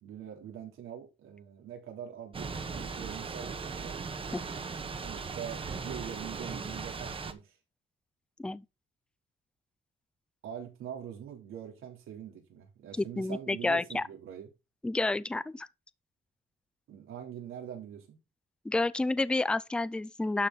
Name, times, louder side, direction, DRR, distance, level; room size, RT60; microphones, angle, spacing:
voice 1, 0.0-4.0 4.3-7.6 10.4-14.5 16.9-18.2, right 9 dB, 80° right, 3.7 m, -44 dB
Thunder / Rain, 2.3-7.3, right 4 dB, 25° right, 1.1 m, -38 dB
voice 2, 13.0-14.0 14.8-15.7 18.6-20.5, left 2 dB, 5° left, 0.4 m, -30 dB
11.5 x 6.8 x 4.1 m
cardioid pair, 155°, 21 cm